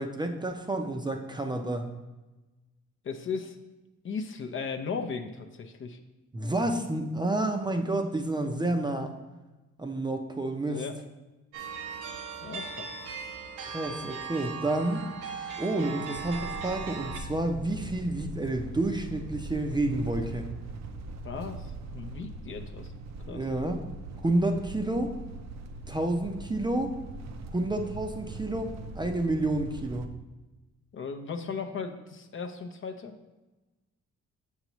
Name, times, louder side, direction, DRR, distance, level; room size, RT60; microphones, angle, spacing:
voice 1, 0.0-1.9 6.3-9.1 9.8-10.8 13.7-15.0 15.6-20.5 23.3-23.8 24.2-25.1 25.9-26.9 27.5-30.1, right 2 dB, 15° right, 4 dB, 0.6 m, -29 dB
voice 2, 3.0-3.6 4.0-6.0 10.7-11.0 12.4-13.0 21.2-22.9 23.3-23.4 30.9-33.1, left 5 dB, 40° left, 5 dB, 0.6 m, -36 dB
sound 1, 11.5-17.2, right 5 dB, 90° right, 0.8 m, -38 dB
sound 2, 16.1-30.1, right 3 dB, 60° right, 0.6 m, -41 dB
6.8 x 5.5 x 3.0 m, 1.1 s
cardioid pair, 90°, 30 cm